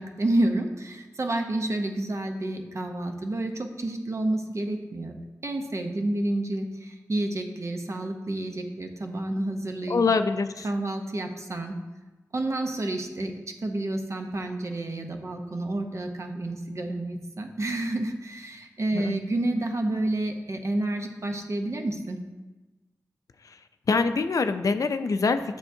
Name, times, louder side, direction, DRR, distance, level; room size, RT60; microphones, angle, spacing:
voice 1, 0.0-5.2 5.4-10.0 10.6-11.8 12.3-13.4 13.6-22.2, right 1 dB, 50° right, 5 dB, 0.7 m, -29 dB
voice 2, 9.9-10.7 18.9-19.2 23.9-25.6, left 4 dB, 65° left, 9 dB, 0.4 m, -24 dB
7.8 x 7.0 x 2.7 m, 1.2 s
wide cardioid pair, 80°, 6 cm